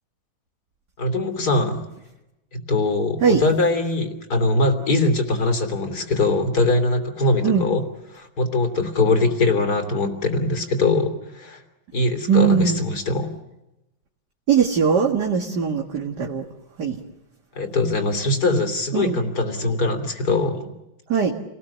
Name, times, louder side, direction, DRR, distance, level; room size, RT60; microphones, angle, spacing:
voice 1, 1.0-1.8 2.5-7.8 8.1-11.6 11.9-13.3 17.5-20.6, left 2 dB, 55° left, 7 dB, 3.6 m, -22 dB
voice 2, 12.3-12.8 14.5-16.4 16.8-17.0 18.9-19.2 21.1-21.3, right 6 dB, 60° right, 0 dB, 2.4 m, -20 dB
29.5 x 19.5 x 7.3 m, 0.95 s
omnidirectional pair, 2.1 m